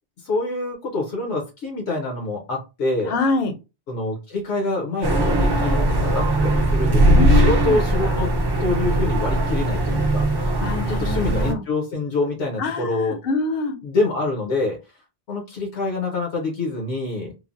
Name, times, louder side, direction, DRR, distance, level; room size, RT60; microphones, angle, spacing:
voice 1, 0.2-3.2 3.9-8.3 8.6-10.3 10.9-13.2 13.8-14.8 15.3-17.3, left 2 dB, 85° left, 0 dB, 1.1 m, -26 dB
voice 2, 3.1-3.5 7.1-7.8 10.6-11.6 12.6-13.8, left 3 dB, 65° left, 7 dB, 0.8 m, -25 dB
sound 1, 5.0-11.5, right 1 dB, 35° right, 0.4 m, -19 dB
3.2 x 2.0 x 2.4 m, 0.27 s
omnidirectional pair, 1.1 m